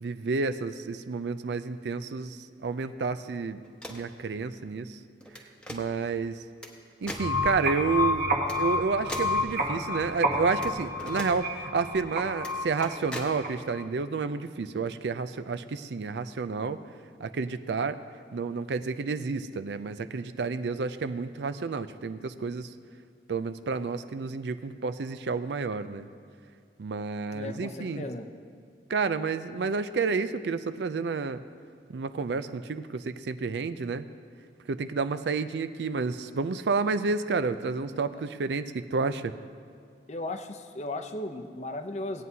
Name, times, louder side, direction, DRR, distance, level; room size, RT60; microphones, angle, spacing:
voice 1, 0.0-3.6 3.9-5.0 5.7-6.4 7.0-16.8 17.2-18.0 18.3-22.7 23.3-26.1 26.8-28.0 28.9-31.4 31.9-34.1 34.7-39.3, right 4 dB, 80° right, 12 dB, 0.4 m, -30 dB
sound 1, 3.6-4.1 5.2-5.8 6.6-6.7 7.1-7.3 8.4-8.6 9.1-9.3 10.6-10.7 11.0-11.3 12.3-12.5 12.8-13.3, left 1 dB, 5° left, 0.9 m, -39 dB
sound 2, 7.0-13.8, left 1 dB, 50° right, 1.2 m, -30 dB
voice 2, 27.3-28.3 40.1-42.2, left 2 dB, 40° left, 6 dB, 0.6 m, -36 dB
18.0 x 9.2 x 2.8 m, 2.3 s
head